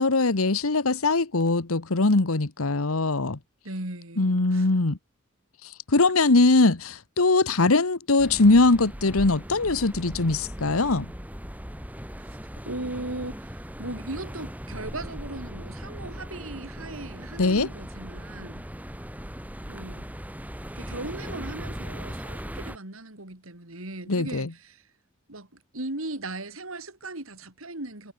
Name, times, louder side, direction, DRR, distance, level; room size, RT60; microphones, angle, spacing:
voice 1, 0.0-3.4 4.2-5.0 5.6-11.1 17.4-17.7 24.1-24.5, left 3 dB, 90° left, 1.3 m, -21 dB
voice 2, 3.6-4.7 12.2-18.6 19.7-20.1 20.8-24.9 25.3-28.1, right 2 dB, 75° right, 4.0 m, -38 dB
sound 1, 8.2-22.8, equal, 10° right, 7.8 m, -38 dB
head